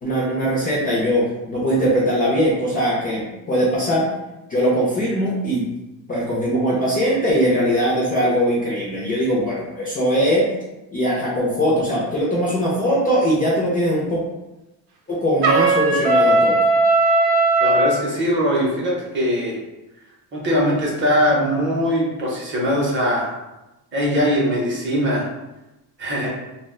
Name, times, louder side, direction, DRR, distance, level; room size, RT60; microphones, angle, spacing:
voice 1, 0.0-4.1 4.5-5.7 6.1-10.5 10.9-14.2 15.1-16.6, equal, 25° left, -6 dB, 0.4 m, -20 dB
Trumpet, 15.4-18.0, right 2 dB, 90° right, 0.6 m, -17 dB
voice 2, 17.6-19.6 20.3-23.3 23.9-25.3 26.0-26.3, equal, 30° right, -4 dB, 0.6 m, -21 dB
2.3 x 2.1 x 3.5 m, 1.0 s
cardioid pair, 170°, 40 cm